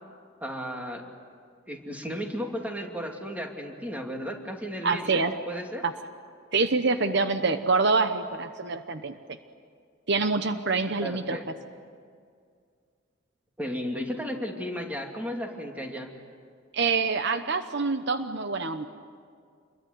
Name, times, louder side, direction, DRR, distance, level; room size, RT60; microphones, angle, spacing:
voice 1, 0.4-1.1 1.7-5.2 5.5-5.9 11.0-11.5 13.6-16.1, equal, 10° right, 2 dB, 2.7 m, -34 dB
voice 2, 4.8-5.3 5.8-5.9 6.5-9.4 10.1-11.4 16.7-18.9, right 4 dB, 60° right, 9 dB, 1.0 m, -26 dB
27.5 x 22.0 x 9.5 m, 2.2 s
head